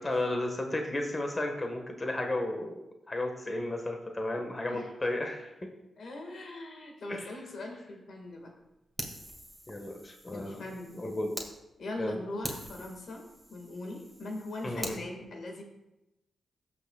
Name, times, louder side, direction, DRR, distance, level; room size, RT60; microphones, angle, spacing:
voice 1, 0.0-2.7 3.1-5.7 7.1-7.3 9.7-10.6 11.0-11.3 12.0-12.2 14.6-15.0, left 1 dB, 30° left, 3 dB, 1.4 m, -33 dB
voice 2, 6.0-8.5 10.3-10.9 11.8-13.2 13.5-15.6, left 2 dB, 70° left, 2 dB, 1.7 m, -41 dB
Fire, 9.0-11.5 12.0-12.1 12.4-15.0, equal, ahead, 1.9 m, -43 dB
17.5 x 6.0 x 2.3 m, 0.93 s
supercardioid pair, 45°, 0 cm